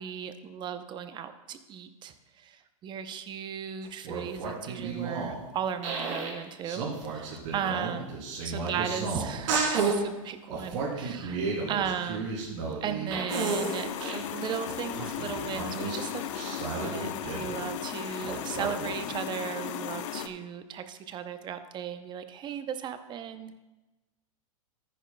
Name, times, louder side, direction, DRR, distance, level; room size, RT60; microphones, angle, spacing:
voice 1, 0.0-6.8 7.1-11.4 11.7-12.4 12.8-23.6, right 8 dB, 25° right, 10 dB, 0.7 m, -36 dB
sound 1, 3.8-5.4 5.8-6.4 6.6-10.0 10.5-14.2 14.7-17.7 18.2-18.9, right 4 dB, 60° right, 3.2 m, -32 dB
sound 2, 13.3-20.3, left 10 dB, 55° left, 0.7 m, -36 dB
13.5 x 10.0 x 2.3 m, 1.1 s
hypercardioid pair, 125°, 18 cm